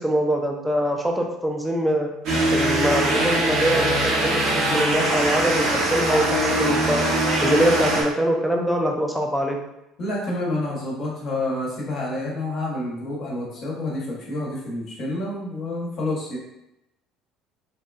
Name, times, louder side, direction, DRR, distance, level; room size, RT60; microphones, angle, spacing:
voice 1, 0.0-2.1 2.5-7.1 7.4-9.6, right 1 dB, 5° right, 0 dB, 0.5 m, -23 dB
sound 1, 2.2-8.0, right 1 dB, 60° right, 0.9 m, -22 dB
voice 2, 10.0-16.4, left 2 dB, 50° left, -3 dB, 0.9 m, -28 dB
2.8 x 2.2 x 2.3 m, 0.88 s
hypercardioid pair, 65°, 0 cm